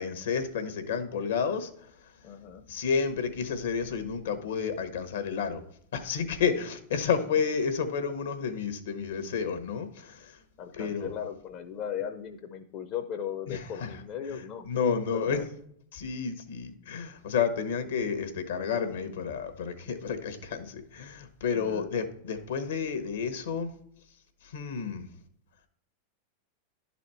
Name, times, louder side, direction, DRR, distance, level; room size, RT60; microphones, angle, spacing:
voice 1, 0.0-1.7 2.7-5.6 5.9-10.4 10.7-11.1 13.5-13.9 14.7-15.4 15.9-23.7 24.4-25.1, left 6 dB, 80° left, 9 dB, 1.1 m, -30 dB
voice 2, 2.2-2.6 10.6-15.5 21.5-21.9, left 9 dB, 45° left, 6 dB, 0.6 m, -37 dB
11.0 x 4.2 x 4.4 m, 0.69 s
hypercardioid pair, 105°, 0 cm